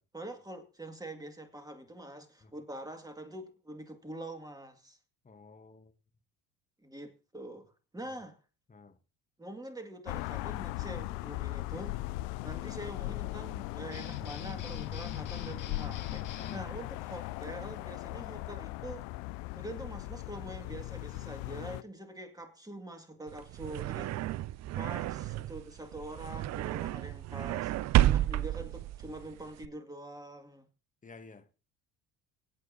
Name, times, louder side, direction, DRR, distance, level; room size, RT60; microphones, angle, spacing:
voice 1, 0.1-5.0 6.8-8.4 9.4-12.0 12.4-16.3 16.5-19.1 19.5-24.2 24.8-30.7, right 1 dB, 10° right, 2.2 m, -45 dB
voice 2, 5.2-5.9 8.1-8.2 8.7-9.0 12.3-12.5 16.3-16.6 24.7-25.0 31.0-31.6, left 4 dB, 15° left, 1.2 m, -53 dB
sound 1, 10.1-21.8, left 19 dB, 60° left, 0.5 m, -39 dB
sound 2, 13.9-16.6, left 9 dB, 40° left, 1.9 m, -42 dB
sound 3, 23.3-29.7, right 14 dB, 35° right, 0.5 m, -31 dB
24.0 x 8.3 x 2.8 m
hypercardioid pair, 70°, 46 cm